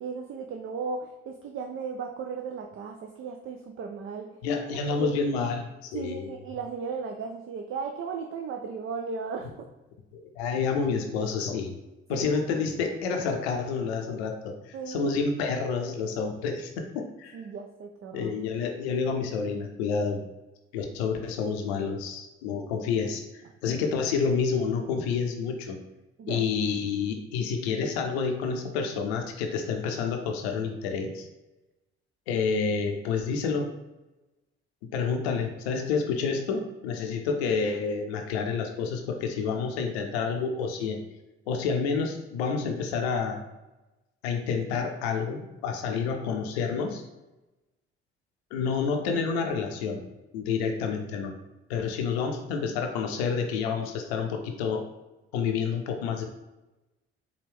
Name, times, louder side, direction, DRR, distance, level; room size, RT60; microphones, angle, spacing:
voice 1, 0.0-4.4 5.0-5.1 5.9-9.5 12.1-12.3 14.7-15.1 17.3-18.3 26.2-26.4, right 5 dB, 40° right, 4 dB, 0.5 m, -35 dB
voice 2, 4.4-6.4 10.1-11.7 12.1-17.4 18.1-20.2 20.7-25.8 26.3-31.3 32.3-33.7 34.9-41.0 41.5-43.4 44.2-47.0 48.5-50.0 50.3-51.3 51.7-54.8 55.3-56.2, left 5 dB, 80° left, 4 dB, 0.6 m, -29 dB
4.6 x 2.3 x 3.4 m, 1.0 s
hypercardioid pair, 45°, 31 cm